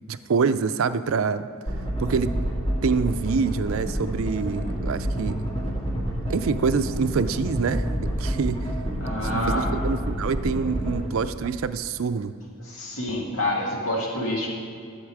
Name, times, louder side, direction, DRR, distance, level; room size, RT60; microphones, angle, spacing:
voice 1, 0.1-1.5 2.0-2.5 2.8-5.4 6.3-8.7 9.2-12.3, right 5 dB, 70° right, 12 dB, 0.4 m, -26 dB
sound 1, 1.7-11.0, equal, 25° left, 2.2 m, -28 dB
voice 2, 9.0-9.7 12.7-14.5, left 1 dB, 75° left, -2 dB, 2.1 m, -27 dB
13.5 x 7.3 x 4.8 m, 2.2 s
head